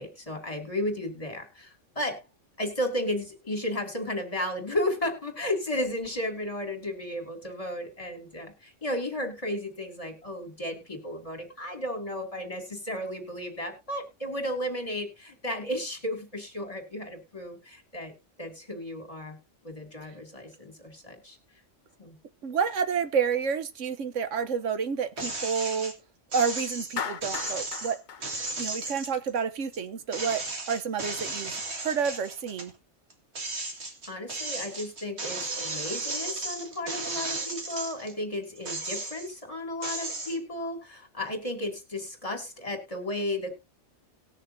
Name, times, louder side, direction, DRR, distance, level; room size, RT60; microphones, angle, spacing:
voice 1, 0.0-2.3 2.6-18.1 18.4-19.4 19.6-21.4 22.0-22.1 34.1-43.5, left 1 dB, 30° left, 2.7 m, -34 dB
voice 2, 22.4-25.9 26.3-28.0 28.6-30.4 30.7-31.5 31.8-32.7, right 6 dB, 85° right, 1.3 m, -29 dB
sound 1, 25.2-25.9 26.3-29.8 30.1-32.7 33.1-38.1 38.6-39.4 39.8-40.4, right 3 dB, 60° right, 2.2 m, -35 dB
Clapping, 27.0-29.3, left 7 dB, 45° left, 0.8 m, -37 dB
19.5 x 6.6 x 2.6 m
omnidirectional pair, 1.2 m